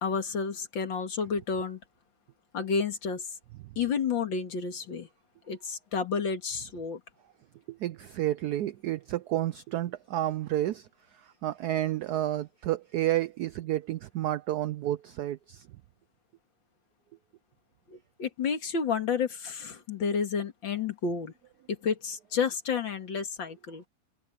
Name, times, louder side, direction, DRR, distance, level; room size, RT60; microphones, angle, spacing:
voice 1, 0.0-1.8 2.5-3.2 3.8-5.1 5.5-7.0 17.9-21.3 21.7-23.8, left 6 dB, 70° left, 2.7 m, -30 dB
voice 2, 7.7-10.9 11.2-15.7, right 13 dB, 80° right, 0.9 m, -30 dB
omnidirectional pair, 2.2 m